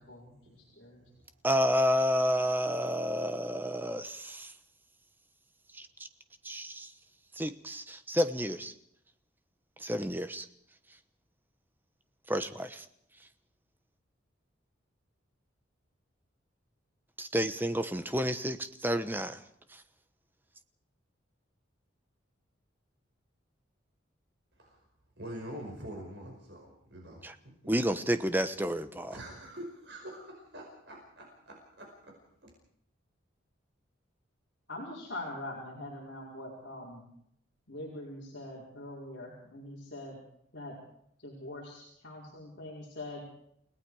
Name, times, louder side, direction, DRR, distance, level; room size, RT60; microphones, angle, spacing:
voice 1, 0.0-1.0 34.7-37.1 37.7-40.2 40.5-40.8 41.2-43.3, left 1 dB, 55° left, -5 dB, 5.0 m, -43 dB
voice 2, 1.4-4.5 5.7-5.9 6.4-6.9 7.3-8.7 9.8-10.5 12.3-12.9 17.2-19.4 19.7-19.8 27.2-27.3 27.7-29.2, equal, 10° right, 10 dB, 1.0 m, -30 dB
voice 3, 25.2-27.2 29.1-32.1, right 1 dB, 55° right, 0 dB, 5.2 m, -45 dB
29.5 x 18.0 x 4.9 m, 0.70 s
head